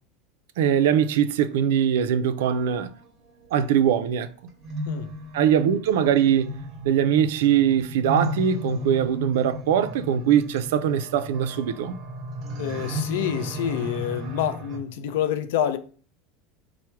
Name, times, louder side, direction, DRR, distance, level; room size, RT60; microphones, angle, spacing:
voice 1, 0.6-2.9 3.5-4.3 5.3-6.6 6.8-12.0, right 9 dB, 85° right, 0.4 m, -22 dB
sound 1, 2.4-14.8, equal, 35° right, 0.7 m, -35 dB
voice 2, 12.6-15.8, left 10 dB, 75° left, 0.4 m, -27 dB
4.6 x 2.1 x 4.4 m
supercardioid pair, 175°, 0 cm